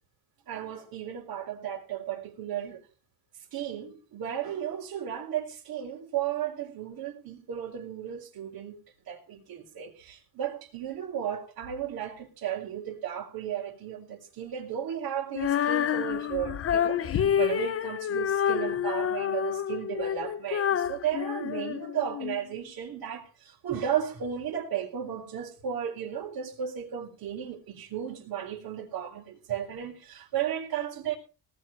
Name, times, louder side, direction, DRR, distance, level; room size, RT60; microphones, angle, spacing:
voice 1, 0.5-2.8 3.5-8.8 9.1-31.2, right 9 dB, 70° right, 4.1 m, -34 dB
Female singing, 15.3-22.4, left 9 dB, 40° left, 0.6 m, -28 dB
18.5 x 6.4 x 7.7 m
cardioid pair, 125°, 37 cm